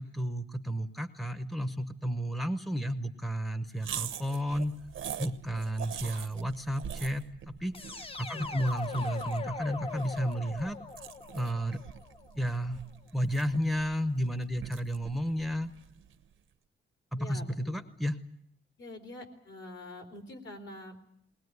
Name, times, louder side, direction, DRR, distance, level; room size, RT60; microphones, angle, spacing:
voice 1, 0.0-4.7 5.2-7.8 8.2-10.8 11.3-11.8 12.4-12.8 13.1-15.7 17.1-18.2, equal, ahead, 10 dB, 0.9 m, -32 dB
snack bite-large, 3.8-16.3, right 9 dB, 85° right, 1.1 m, -44 dB
sound 1, 7.7-12.7, left 4 dB, 25° left, 0.9 m, -40 dB
voice 2, 17.2-17.9 18.8-21.0, left 2 dB, 65° left, 3 dB, 3.9 m, -46 dB
20.5 x 20.0 x 9.5 m, 0.69 s
wide cardioid pair, 160°, 20 cm